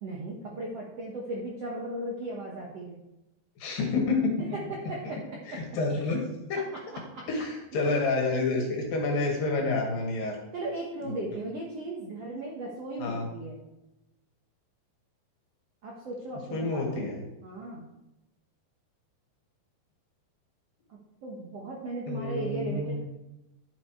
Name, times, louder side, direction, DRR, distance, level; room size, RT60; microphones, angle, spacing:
voice 1, 0.0-3.0 4.4-5.6 7.1-7.3 10.5-13.6 15.8-17.1 17.4-17.9 21.2-23.0, right 2 dB, 75° right, -3 dB, 1.4 m, -37 dB
voice 2, 3.6-4.4 5.0-5.1 5.5-6.2 6.5-6.7 7.3-10.4 11.0-11.1 13.0-13.3 16.5-17.2 22.1-23.0, left 3 dB, 60° left, 1 dB, 3.1 m, -28 dB
11.0 x 6.5 x 4.6 m, 0.93 s
omnidirectional pair, 4.9 m